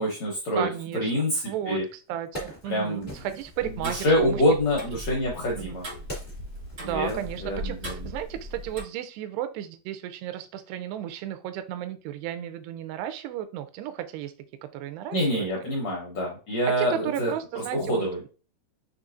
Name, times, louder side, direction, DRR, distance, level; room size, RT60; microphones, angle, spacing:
voice 1, 0.0-0.7 0.9-1.8 2.7-3.1 3.6-5.9 6.8-8.1 15.1-17.3 17.7-18.2, equal, 75° left, -3 dB, 1.5 m, -26 dB
voice 2, 0.5-4.4 5.6-5.8 6.8-14.3 14.7-15.5 16.8-18.3, right 11 dB, 90° right, 10 dB, 2.7 m, -34 dB
Wood, 2.0-3.7 4.6-8.0 8.3-8.4, right 1 dB, 45° left, 0.6 m, -42 dB
Tick-tock, 3.5-8.8, equal, 60° right, 0.6 m, -39 dB
6.7 x 3.1 x 2.5 m, 0.34 s
omnidirectional pair, 4.6 m